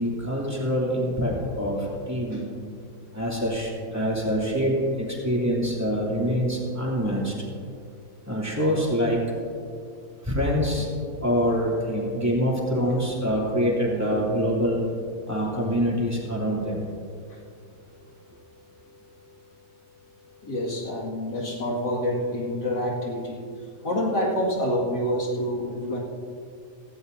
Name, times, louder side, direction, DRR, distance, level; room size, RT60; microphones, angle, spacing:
voice 1, 0.0-2.5 3.1-7.3 8.3-9.2 10.2-10.9 11.2-14.8 15.3-16.8, equal, 10° right, -5 dB, 2.8 m, -25 dB
voice 2, 20.4-23.4 23.8-26.0, equal, 90° left, -4 dB, 2.7 m, -27 dB
17.0 x 15.5 x 2.7 m, 2.3 s
omnidirectional pair, 1.7 m